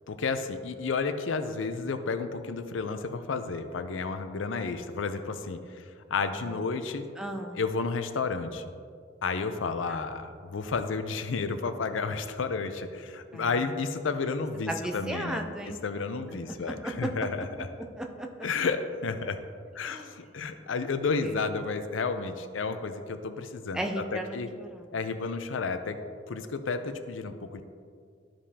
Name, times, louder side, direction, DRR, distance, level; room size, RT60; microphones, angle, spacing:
voice 1, 0.1-5.6 6.1-7.0 7.5-8.6 9.2-17.7 18.4-19.4 19.8-24.5 24.9-26.0 26.3-27.6, left 4 dB, 85° left, 9 dB, 0.5 m, -31 dB
voice 2, 7.2-7.6 9.9-10.0 13.3-13.5 14.7-15.8 16.6-17.1 18.0-18.3 19.9-20.1 21.2-21.3 23.7-24.8, right 1 dB, 5° right, 2 dB, 0.5 m, -35 dB
12.5 x 5.2 x 2.8 m, 2.2 s
head